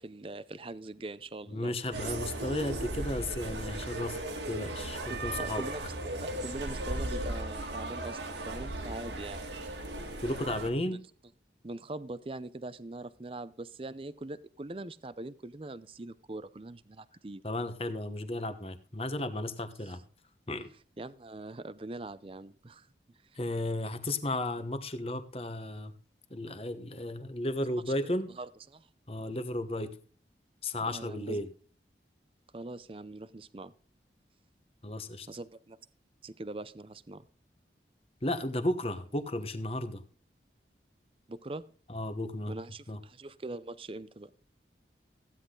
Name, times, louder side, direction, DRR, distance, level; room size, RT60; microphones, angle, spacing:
voice 1, 0.0-1.7 5.1-9.4 10.9-11.0 11.6-17.4 19.9-20.0 21.0-22.9 27.7-28.1 28.4-28.9 30.8-31.4 32.5-33.7 35.3-35.8 36.2-37.2 41.3-41.7 42.5-44.3, right 2 dB, 30° right, 16 dB, 0.5 m, -42 dB
voice 2, 1.5-5.6 10.2-11.0 17.4-20.0 20.5-20.7 23.4-25.9 26.3-28.3 29.1-30.0 30.6-31.5 34.8-35.3 38.2-40.0 41.9-42.6 42.9-43.0, left 1 dB, 35° left, 10 dB, 1.1 m, -34 dB
sound 1, 1.9-10.7, right 1 dB, 80° right, 1.9 m, -37 dB
15.0 x 10.0 x 3.9 m, 0.41 s
head